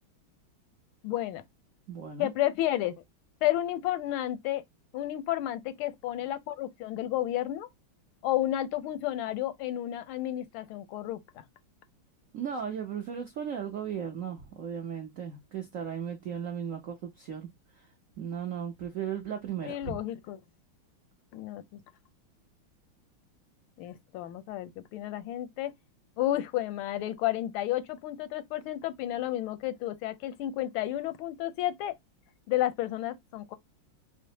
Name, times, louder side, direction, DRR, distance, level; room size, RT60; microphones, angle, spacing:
voice 1, 1.0-1.4 2.2-2.9 3.4-4.6 4.9-7.7 8.2-11.4 19.7-20.4 21.3-21.8 23.8-25.7 26.2-31.9 32.5-33.6, left 14 dB, 85° left, 1.4 m, -31 dB
voice 2, 1.9-2.3 12.3-17.5 17.8-17.9 18.2-20.0, right 8 dB, 75° right, 0.7 m, -36 dB
5.0 x 2.1 x 2.7 m
omnidirectional pair, 2.3 m